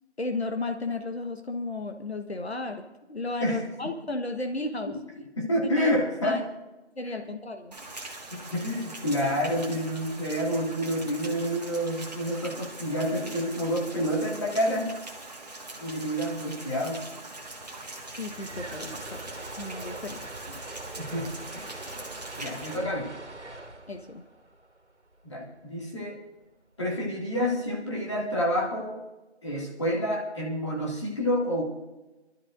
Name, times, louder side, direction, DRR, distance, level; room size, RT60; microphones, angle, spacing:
voice 1, 0.2-2.8 3.1-4.9 5.8-5.9 6.2-6.4 7.0-7.8 18.2-20.3 22.8-22.9 23.9-24.2, left 2 dB, 65° left, 5 dB, 1.3 m, -34 dB
voice 2, 5.4-6.4 8.3-15.0 15.8-17.0 21.0-21.8 22.4-23.1 25.2-26.2 26.8-29.0 29.4-31.6, equal, 25° left, -3 dB, 2.2 m, -28 dB
Rain, 7.7-22.8, right 2 dB, 35° right, 1.6 m, -42 dB
sound 1, 17.3-25.6, right 2 dB, 75° right, 2.2 m, -43 dB
28.0 x 12.5 x 2.5 m, 1.1 s
figure-of-eight pair, 170°, 34 cm